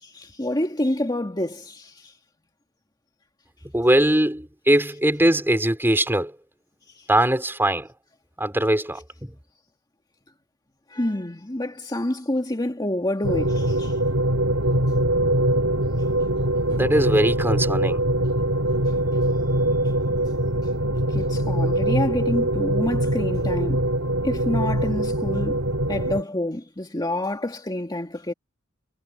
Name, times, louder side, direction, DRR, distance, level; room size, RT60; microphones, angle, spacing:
voice 1, 0.0-2.1 6.9-7.1 10.9-14.0 21.1-23.9 24.2-28.3, left 1 dB, 20° left, 2.2 m, -28 dB
voice 2, 3.7-6.4 7.1-7.9 8.4-9.3 16.7-18.0, right 1 dB, 10° right, 4.5 m, -21 dB
sound 1, 13.2-26.2, right 1 dB, 90° right, 3.5 m, -23 dB
head